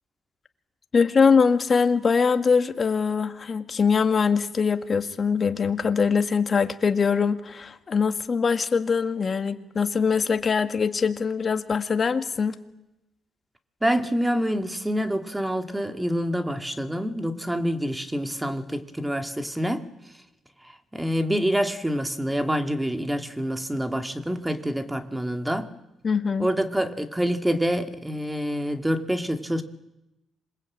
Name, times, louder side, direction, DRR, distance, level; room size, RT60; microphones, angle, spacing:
voice 1, 0.9-12.5 26.0-26.5, left 5 dB, 40° left, 1.9 m, -22 dB
voice 2, 13.8-19.9 20.9-25.7 26.4-29.6, equal, 10° right, 2.2 m, -26 dB
27.0 x 21.5 x 8.7 m
cardioid pair, 90°, 0 cm